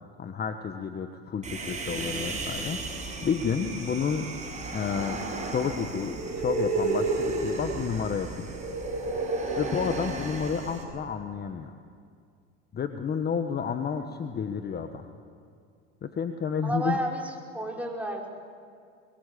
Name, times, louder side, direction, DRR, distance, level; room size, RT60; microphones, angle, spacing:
voice 1, 0.2-4.3 4.7-8.6 9.6-11.7 12.7-15.0 16.0-17.0, left 6 dB, 30° left, 7 dB, 1.3 m, -31 dB
Human voice, 1.4-10.8, right 3 dB, 20° right, 6.4 m, -32 dB
voice 2, 16.6-18.3, right 1 dB, 5° right, -2 dB, 5.3 m, -32 dB
22.5 x 22.0 x 8.5 m, 2.2 s
supercardioid pair, 100°, 34 cm